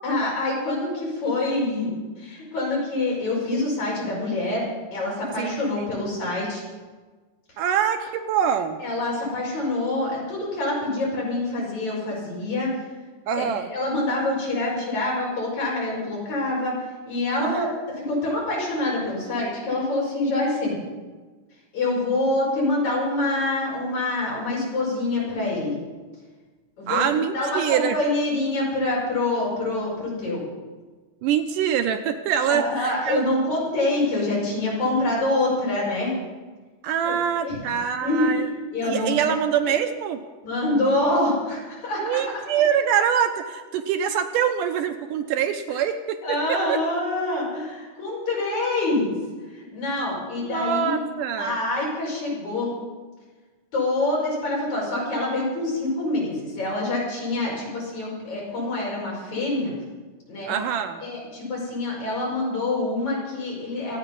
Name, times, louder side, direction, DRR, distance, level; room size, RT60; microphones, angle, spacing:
voice 1, 0.0-1.9 2.2-4.6 4.9-6.6 8.8-12.7 13.3-16.8 17.1-20.7 21.7-25.7 26.8-30.4 32.4-36.1 37.0-37.2 37.4-37.7 38.0-38.4 38.7-39.4 40.4-42.2 45.7-45.8 46.2-49.1 49.5-51.0 51.4-52.7 53.7-59.7 60.3-60.6 61.0-64.0, left 2 dB, 55° left, -4 dB, 6.7 m, -26 dB
voice 2, 5.4-5.9 7.6-8.8 13.3-13.7 17.4-17.7 26.9-28.0 31.2-33.2 36.8-38.5 38.8-40.2 42.0-46.8 50.4-51.6 60.5-61.0, right 8 dB, 75° right, 7 dB, 2.2 m, -24 dB
25.5 x 9.2 x 5.4 m, 1.3 s
omnidirectional pair, 4.0 m